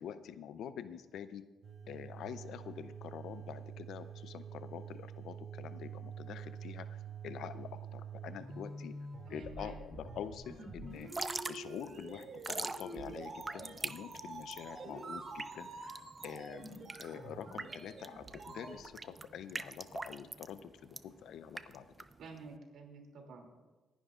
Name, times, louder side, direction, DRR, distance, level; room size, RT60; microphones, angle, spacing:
voice 1, 0.0-1.4 1.9-8.9 9.3-11.1 11.5-21.9, left 8 dB, 75° left, 12 dB, 0.6 m, -46 dB
sound 1, 1.6-18.9, right 4 dB, 50° right, 2.5 m, -47 dB
voice 2, 9.3-9.8 22.2-23.6, right 3 dB, 70° right, 2 dB, 2.7 m, -50 dB
Drip / Trickle dribble, 11.0-22.6, right 3 dB, 25° right, 0.5 m, -43 dB
26.5 x 10.5 x 2.5 m, 1.2 s
cardioid pair, 90°, 0 cm